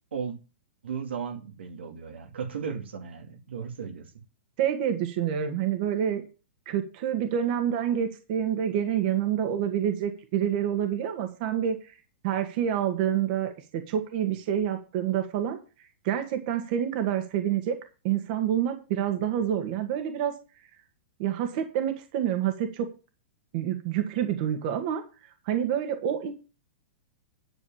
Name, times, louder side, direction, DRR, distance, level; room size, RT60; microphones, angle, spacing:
voice 1, 0.8-4.1, right 6 dB, 85° right, 2.6 m, -35 dB
voice 2, 4.6-6.2 6.7-11.9 12.2-15.6 16.0-17.8 18.0-20.3 21.2-22.9 23.5-25.0 25.5-26.3, right 9 dB, 50° right, 1.9 m, -27 dB
11.0 x 5.4 x 7.3 m
hypercardioid pair, 135°, 6 cm